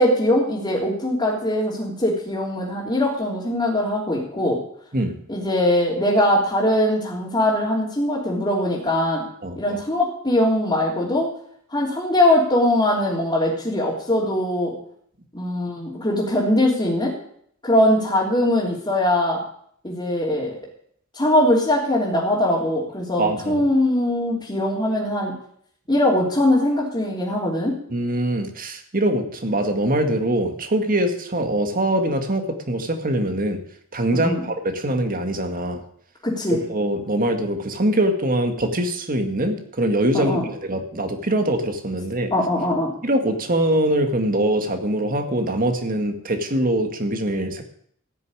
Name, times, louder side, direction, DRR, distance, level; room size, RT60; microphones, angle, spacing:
voice 1, 0.0-4.6 5.3-9.2 9.6-11.3 11.7-14.7 15.3-17.1 17.6-19.4 19.8-20.6 21.1-25.3 25.9-27.7 34.1-34.4 36.2-36.6 40.1-40.5 42.3-42.9, left 1 dB, 20° left, -6 dB, 3.2 m, -21 dB
voice 2, 9.4-9.8 23.2-23.6 27.9-33.6 33.9-35.8 36.5-42.3 43.0-47.6, right 1 dB, 45° right, 6 dB, 1.8 m, -23 dB
15.0 x 6.9 x 9.7 m, 0.66 s
head